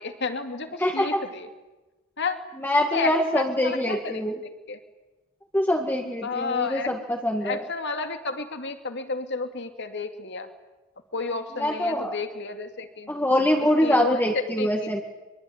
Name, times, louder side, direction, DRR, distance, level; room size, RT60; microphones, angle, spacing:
voice 1, 0.0-1.5 2.2-2.4 2.8-4.8 6.2-6.9 7.4-10.5 11.1-13.1 13.8-14.9, left 4 dB, 60° left, 7 dB, 2.5 m, -31 dB
voice 2, 0.8-1.2 2.6-4.4 5.5-7.6 11.6-12.1 13.1-15.0, left 1 dB, 10° left, 1 dB, 2.0 m, -24 dB
24.0 x 23.5 x 9.5 m, 1.1 s
head